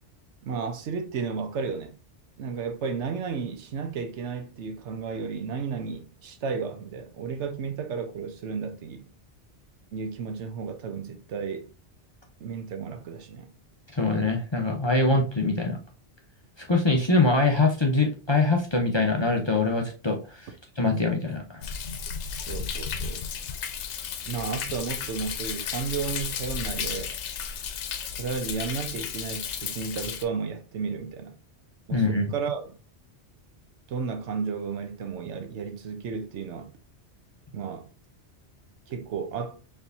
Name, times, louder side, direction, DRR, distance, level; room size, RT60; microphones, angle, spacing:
voice 1, 0.4-2.0 2.4-9.1 9.9-11.7 12.4-13.5 22.5-23.2 24.3-27.2 28.1-31.4 31.9-32.7 33.9-36.7 37.5-37.9 38.9-39.6, right 5 dB, 85° right, 1.0 m, -33 dB
voice 2, 13.9-15.8 16.7-20.5 20.8-21.6 31.9-32.3, left 3 dB, 30° left, 0.6 m, -23 dB
Thunder, 21.6-30.2, left 7 dB, 90° left, 0.9 m, -33 dB
4.3 x 3.3 x 2.6 m
omnidirectional pair, 1.2 m